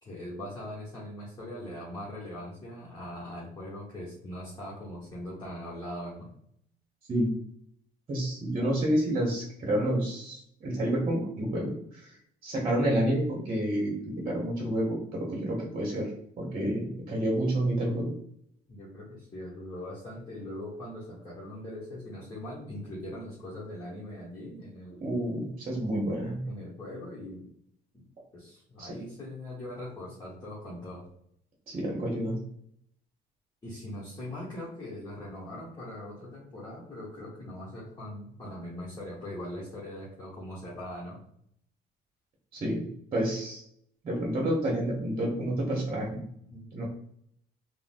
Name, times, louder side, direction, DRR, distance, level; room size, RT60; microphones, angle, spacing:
voice 1, 0.0-6.3 16.7-16.8 18.7-25.1 26.4-27.5 27.9-28.1 28.3-31.0 33.6-41.2 46.5-46.9, left 1 dB, 25° left, -7 dB, 1.2 m, -41 dB
voice 2, 8.1-12.1 12.4-16.1 16.4-18.1 25.0-26.4 28.8-29.0 31.7-32.4 42.5-43.6 44.0-46.2 46.7-46.9, right 1 dB, 35° right, -2 dB, 1.0 m, -29 dB
3.7 x 2.1 x 2.5 m, 0.69 s
cardioid pair, 110°, 17 cm